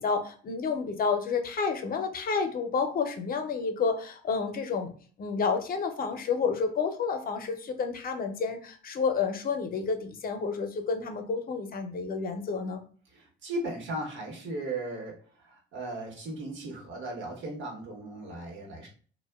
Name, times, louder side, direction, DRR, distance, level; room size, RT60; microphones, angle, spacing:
voice 1, 0.0-4.9 5.2-12.8, left 5 dB, 45° left, 6 dB, 0.5 m, -30 dB
voice 2, 13.1-18.9, right 2 dB, 70° right, 0 dB, 0.9 m, -37 dB
2.7 x 2.1 x 2.2 m, 0.42 s
cardioid pair, 90°, 20 cm